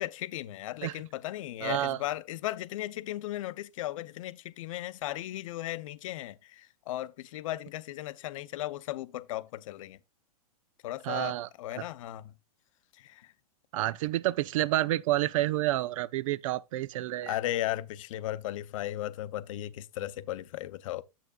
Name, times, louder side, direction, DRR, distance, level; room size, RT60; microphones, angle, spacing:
voice 1, 0.0-10.0 10.8-12.3 13.0-13.3 17.3-21.0, left 14 dB, 60° left, 0.7 m, -36 dB
voice 2, 1.6-2.0 11.0-11.5 11.8-11.9 13.7-17.4, right 15 dB, 55° right, 0.5 m, -29 dB
10.0 x 8.0 x 2.4 m
hypercardioid pair, 120°, 19 cm